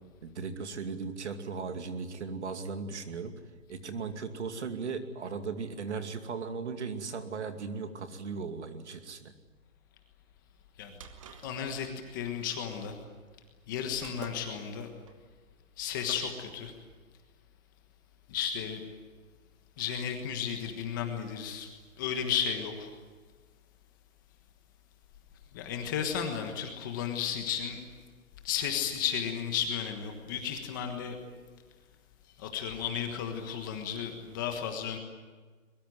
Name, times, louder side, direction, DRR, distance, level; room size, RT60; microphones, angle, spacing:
voice 1, 0.2-3.3 3.7-9.3, right 5 dB, 55° right, 8 dB, 2.5 m, -37 dB
sound 1, 10.6-16.5, right 6 dB, 25° right, 1.4 m, -51 dB
voice 2, 11.4-12.9 13.7-14.9 15.8-16.7 18.3-18.8 19.8-21.7 22.0-22.9 25.5-27.8 28.4-31.2 32.4-35.0, left 8 dB, 15° left, 5 dB, 1.4 m, -33 dB
23.0 x 22.0 x 9.4 m, 1.5 s
hypercardioid pair, 175°, 41 cm